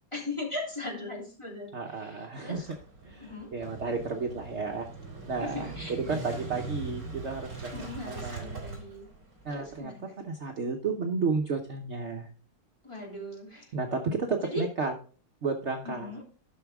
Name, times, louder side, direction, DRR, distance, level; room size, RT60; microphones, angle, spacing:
voice 1, 0.1-2.7 3.2-3.5 5.4-6.4 7.7-9.1 9.5-10.2 12.8-13.7 14.4-14.7 15.8-16.2, left 2 dB, 15° left, -3 dB, 2.8 m, -39 dB
voice 2, 1.7-2.6 3.0-4.9 5.3-5.7 6.1-7.7 8.1-8.6 9.4-9.9 10.3-12.3 13.7-14.9 15.4-16.1, right 4 dB, 60° right, 2 dB, 0.7 m, -32 dB
Motorcycle / Engine starting, 2.6-9.8, right 3 dB, 35° right, 3.3 m, -41 dB
13.0 x 6.1 x 3.5 m, 0.39 s
omnidirectional pair, 2.3 m